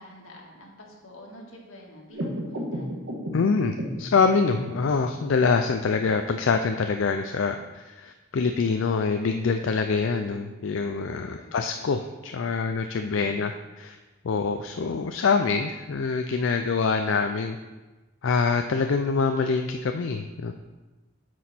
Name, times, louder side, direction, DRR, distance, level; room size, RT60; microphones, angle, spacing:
voice 1, 0.0-2.9 11.3-11.7 12.9-13.6, equal, 85° left, -2 dB, 2.0 m, -48 dB
sound 1, 2.1-5.1, equal, 75° right, 1.5 m, -33 dB
voice 2, 3.3-14.0 14.2-17.6 18.2-20.5, left 4 dB, 70° left, 6 dB, 0.4 m, -25 dB
9.3 x 6.1 x 4.3 m, 1.2 s
head